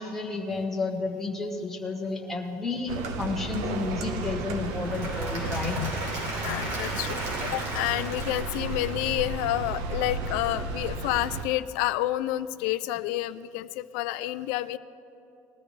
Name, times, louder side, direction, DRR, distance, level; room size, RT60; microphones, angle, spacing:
voice 1, 0.0-5.8, left 3 dB, 5° left, -1 dB, 1.3 m, -31 dB
sound 1, 2.9-11.4, right 3 dB, 75° right, 1.1 m, -33 dB
Applause / Crowd, 4.6-9.6, right 1 dB, 50° right, 3.7 m, -36 dB
voice 2, 5.6-5.9 6.2-14.8, left 15 dB, 75° left, 12 dB, 0.4 m, -29 dB
19.5 x 13.0 x 3.3 m, 2.7 s
cardioid pair, 170°, 6 cm